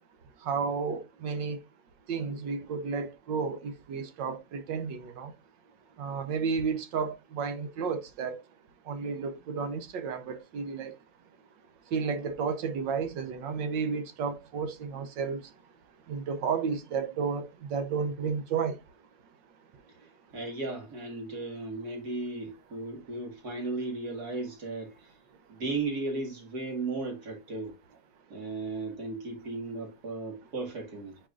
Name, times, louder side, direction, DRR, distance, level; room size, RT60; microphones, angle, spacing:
voice 1, 0.4-1.6 2.1-5.3 6.0-8.4 8.9-10.9 11.9-15.4 16.1-18.8, right 5 dB, 75° right, 1.6 m, -32 dB
voice 2, 19.9-25.1 25.5-27.8 28.3-31.2, right 3 dB, 55° right, 2.6 m, -36 dB
10.0 x 5.0 x 2.5 m
omnidirectional pair, 2.0 m